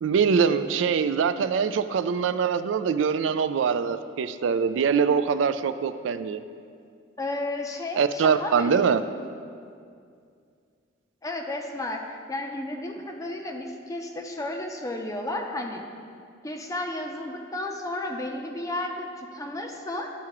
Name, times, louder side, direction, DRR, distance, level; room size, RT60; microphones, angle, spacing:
voice 1, 0.0-6.4 7.9-9.0, right 6 dB, 75° right, 11 dB, 0.3 m, -23 dB
voice 2, 7.2-8.8 11.2-15.8 16.4-20.1, left 2 dB, 15° left, 2 dB, 0.5 m, -33 dB
12.5 x 4.7 x 3.0 m, 2.3 s
head